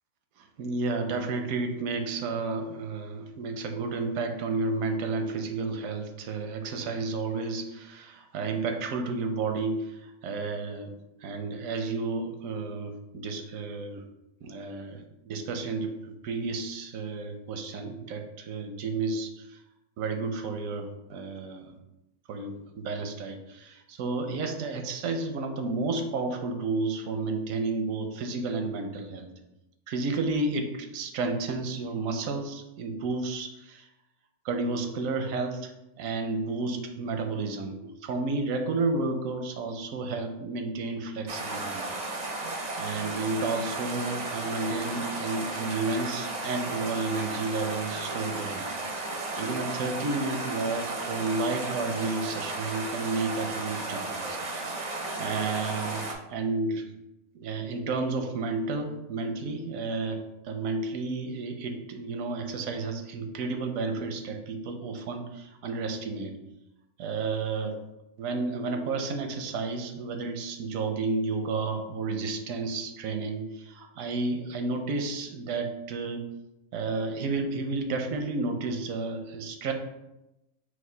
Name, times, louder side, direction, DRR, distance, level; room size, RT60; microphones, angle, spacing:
voice 1, 0.4-10.9 11.2-14.0 14.4-19.6 20.0-21.7 22.3-29.3 29.9-33.9 34.4-35.7 36.0-41.8 42.8-48.7 49.4-56.8 57.3-66.3 67.0-67.8 68.2-76.2 76.7-79.7, right 3 dB, 85° right, 5 dB, 1.0 m, -31 dB
sound 1, 41.3-56.1, right 2 dB, 55° right, 0.4 m, -34 dB
4.9 x 2.0 x 3.7 m, 0.92 s
omnidirectional pair, 1.4 m